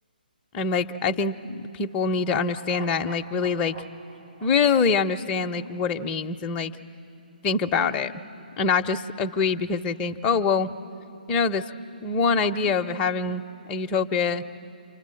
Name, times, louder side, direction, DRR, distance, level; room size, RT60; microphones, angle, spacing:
voice 1, 0.5-3.7 4.4-6.7 7.4-8.1 8.6-10.7 11.3-11.7 12.0-13.4 13.7-14.4, left 5 dB, 20° left, 5 dB, 0.6 m, -24 dB
sound 1, 2.4-5.8 6.1-6.2, right 3 dB, 80° right, 1.5 m, -46 dB
28.5 x 24.0 x 7.6 m, 2.7 s
figure-of-eight pair, 140°, 5 cm